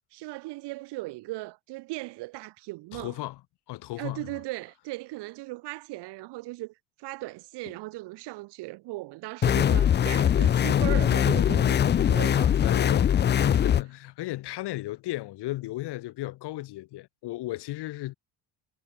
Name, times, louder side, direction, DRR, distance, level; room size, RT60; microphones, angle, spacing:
voice 1, 0.0-3.2 4.0-6.7 7.0-12.8 13.4-13.6, right 20 dB, 75° right, 1.2 m, -38 dB
voice 2, 2.9-3.4 3.7-4.4 12.6-18.1, left 17 dB, 70° left, 3.4 m, -35 dB
sound 1, 9.4-13.8, left 9 dB, 25° left, 0.4 m, -22 dB
cardioid pair, 110°, 41 cm